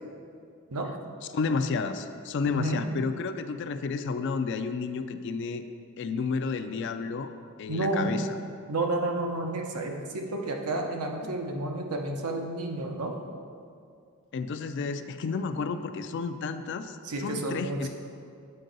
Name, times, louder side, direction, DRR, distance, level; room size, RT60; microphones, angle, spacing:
voice 1, 1.3-5.6 6.0-7.3 7.6-8.3 14.3-17.9, left 4 dB, 55° left, 10 dB, 0.3 m, -31 dB
voice 2, 7.7-8.2 8.7-13.1 17.0-17.9, right 2 dB, 90° right, 2 dB, 0.8 m, -30 dB
7.7 x 4.6 x 3.9 m, 2.3 s
head